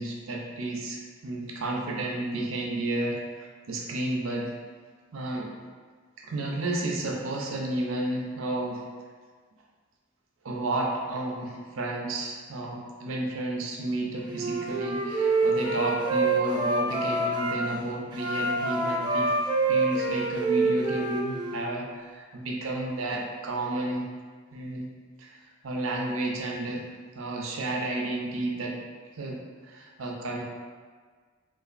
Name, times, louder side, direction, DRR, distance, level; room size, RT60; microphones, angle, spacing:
voice 1, 0.0-4.5 5.1-5.5 6.2-8.8 10.4-19.3 19.7-24.0 24.5-24.9 25.2-26.8 27.1-28.8 29.2-30.4, right 2 dB, 75° right, -1 dB, 0.5 m, -32 dB
Wind instrument woodwind instrument, 14.3-17.6 18.1-21.7, right 3 dB, 20° right, 0.4 m, -26 dB
3.8 x 2.5 x 2.5 m, 1.5 s
head